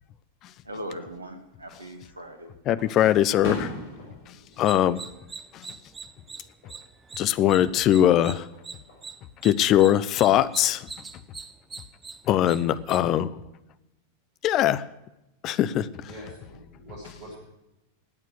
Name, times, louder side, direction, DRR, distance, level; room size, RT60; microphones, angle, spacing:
voice 1, 0.6-2.5, right 1 dB, 80° right, 7 dB, 2.0 m, -39 dB
Fireworks, 1.6-2.3 2.8-5.9 6.2-6.8 8.3-9.1, left 2 dB, 50° left, 6.2 m, -39 dB
voice 2, 2.7-3.7 4.6-5.0 5.5-5.6 7.2-8.5 9.4-10.9 12.3-13.3 14.4-14.8 15.4-15.9, left 12 dB, 35° left, 17 dB, 0.7 m, -21 dB
sound 1, 4.5-13.0, right 4 dB, 15° right, 0.9 m, -42 dB
voice 3, 16.0-17.4, right 1 dB, 45° right, -5 dB, 6.8 m, -44 dB
17.0 x 9.3 x 6.5 m, 0.93 s
figure-of-eight pair, 90°, 0 cm